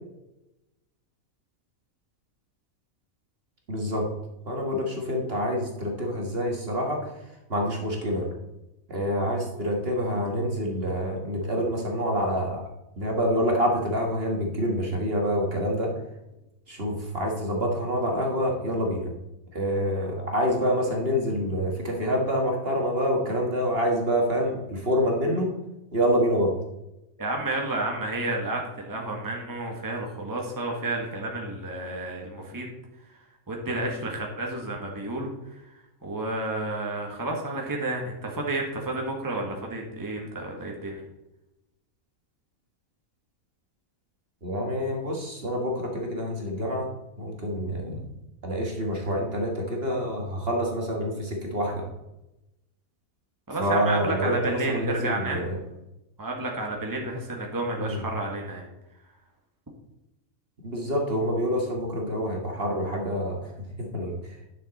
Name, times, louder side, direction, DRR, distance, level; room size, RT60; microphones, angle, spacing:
voice 1, 3.7-4.1 4.4-7.1 7.5-8.3 8.9-12.6 13.0-15.9 16.7-19.1 19.5-25.5 25.9-26.5 44.4-46.9 47.2-48.1 48.4-51.8 53.6-55.6 57.8-58.0 60.6-63.5 63.8-64.4, equal, 45° right, 0 dB, 1.8 m, -27 dB
voice 2, 27.2-32.7 33.5-35.6 36.0-41.0 53.5-55.5 56.2-58.7, right 2 dB, 15° right, 0 dB, 1.5 m, -31 dB
10.5 x 6.6 x 4.2 m, 0.91 s
omnidirectional pair, 1.4 m